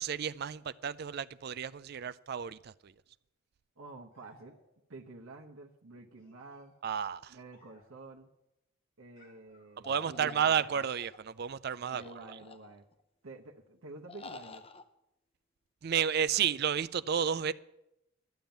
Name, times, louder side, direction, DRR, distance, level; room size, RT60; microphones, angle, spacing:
voice 1, 0.0-2.9 6.8-7.3 9.8-12.0 15.8-17.5, right 8 dB, 50° right, 0.4 m, -31 dB
voice 2, 3.8-4.6 4.9-6.7 7.3-8.3 9.0-10.7 11.9-12.8 13.2-14.7, right 3 dB, 85° right, 1.0 m, -49 dB
sound 1, 4.1-4.9 6.1-8.1 9.2-10.3, left 2 dB, 45° left, 3.5 m, -65 dB
sound 2, 9.8-11.2 11.9-13.0 14.1-14.8, left 3 dB, 25° left, 0.6 m, -50 dB
12.0 x 7.2 x 9.1 m
head